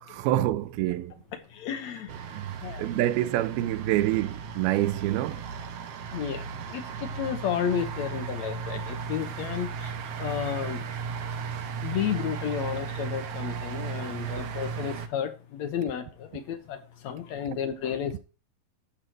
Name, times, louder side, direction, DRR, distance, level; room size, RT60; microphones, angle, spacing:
voice 1, 0.0-1.1 2.3-5.4, right 14 dB, 90° right, 2.6 m, -27 dB
voice 2, 1.6-2.1 2.6-2.9 6.1-6.4 6.7-6.8 7.2-9.7 10.2-10.8 11.8-16.8 17.0-18.2, left 8 dB, 70° left, 1.8 m, -31 dB
sound 1, 2.1-15.1, right 6 dB, 70° right, 1.4 m, -36 dB
12.5 x 4.7 x 7.8 m
omnidirectional pair, 4.3 m